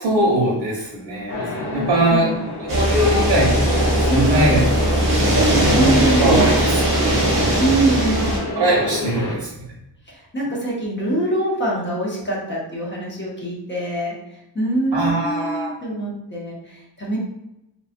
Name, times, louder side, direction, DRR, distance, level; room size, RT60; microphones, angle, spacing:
voice 1, 0.0-2.3 2.6-5.4 6.2-7.3 8.5-9.7 14.9-15.7, right 1 dB, 70° right, -6 dB, 0.9 m, -22 dB
sound 1, 1.3-9.4, left 2 dB, 75° left, 0.9 m, -28 dB
voice 2, 1.7-2.4 4.1-4.6 5.7-6.5 7.6-8.3 10.1-14.1 14.5-17.2, right 2 dB, 25° left, -5 dB, 0.7 m, -24 dB
sound 2, 2.7-8.4, right 1 dB, 40° right, 0.9 m, -19 dB
3.0 x 2.5 x 2.5 m, 0.88 s
wide cardioid pair, 175°, 42 cm